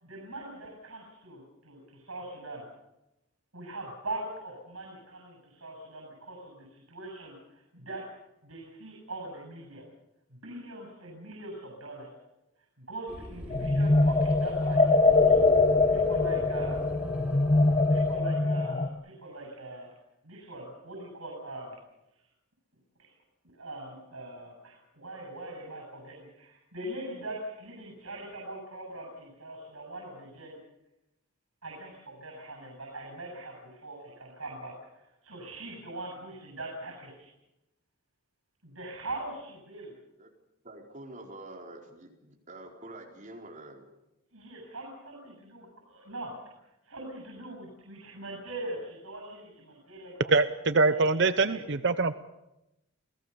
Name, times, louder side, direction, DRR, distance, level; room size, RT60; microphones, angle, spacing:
voice 1, 0.0-2.6 3.5-8.0 8.4-9.8 10.3-12.1 12.8-15.5 15.9-16.9 17.7-19.9 20.2-21.8 22.1-22.2 23.0-23.2 23.4-30.6 31.6-37.3 38.6-39.9 44.3-46.3 46.8-50.3 50.9-51.6, right 1 dB, 90° right, 0 dB, 7.7 m, -42 dB
sound 1, 13.1-18.2, equal, 5° right, 3.8 m, -42 dB
sound 2, 13.5-18.9, left 3 dB, 30° left, 1.2 m, -23 dB
voice 2, 40.6-43.9, right 2 dB, 35° right, 1 dB, 4.7 m, -46 dB
voice 3, 50.3-52.1, right 3 dB, 55° right, 11 dB, 0.8 m, -24 dB
29.0 x 18.0 x 7.0 m, 0.91 s
head